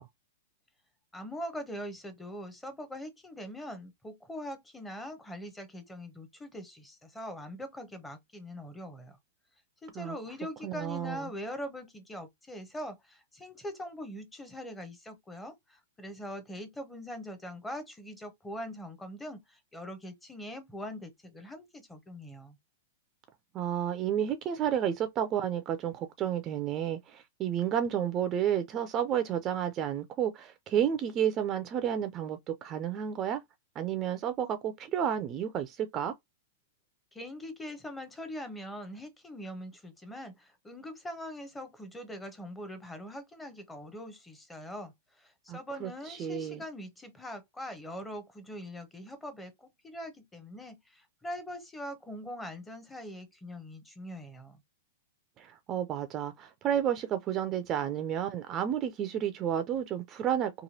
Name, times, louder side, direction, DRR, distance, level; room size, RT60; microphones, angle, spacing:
voice 1, 1.1-9.2 9.8-22.6 37.1-54.6, equal, 10° left, 0.7 m, -42 dB
voice 2, 10.6-11.3 23.5-33.4 33.8-36.1 45.5-46.6 55.4-60.5, right 9 dB, 30° right, 0.4 m, -31 dB
3.0 x 2.2 x 2.7 m
hypercardioid pair, 135°, 0 cm